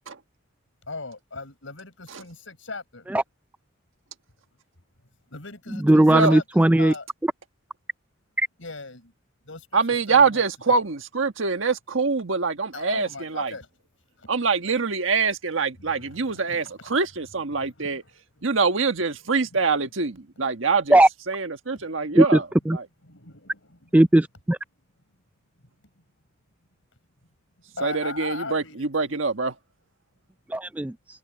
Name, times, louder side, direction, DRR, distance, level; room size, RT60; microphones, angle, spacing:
voice 1, 0.9-3.1 5.3-6.4 6.8-7.1 8.6-9.1 9.4-10.8 12.7-13.7 14.2-14.3 15.8-17.0 17.5-18.4 19.2-19.9 20.6-20.8 21.9-22.2 23.0-23.9 27.7-29.2, left 3 dB, 90° left, 5.6 m, -39 dB
voice 2, 5.8-6.9 8.4-8.5 20.9-21.1 22.1-22.8 23.9-24.6 30.5-30.9, right 1 dB, 10° right, 0.3 m, -17 dB
voice 3, 9.7-13.5 14.3-18.0 18.4-21.0 21.3-22.4 22.7-22.8 27.8-29.5, right 4 dB, 90° right, 1.5 m, -24 dB
head